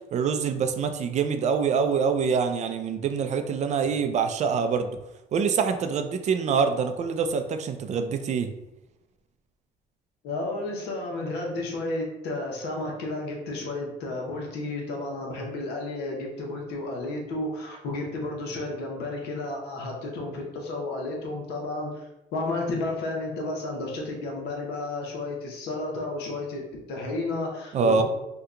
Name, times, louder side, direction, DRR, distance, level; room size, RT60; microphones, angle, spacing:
voice 1, 0.1-5.0 5.3-8.5 27.7-28.0, right 6 dB, 45° right, 7 dB, 0.4 m, -25 dB
voice 2, 10.2-22.1 22.3-28.0, left 2 dB, 80° left, 0 dB, 0.9 m, -32 dB
2.8 x 2.3 x 3.6 m, 0.91 s
cardioid pair, 110°, 17 cm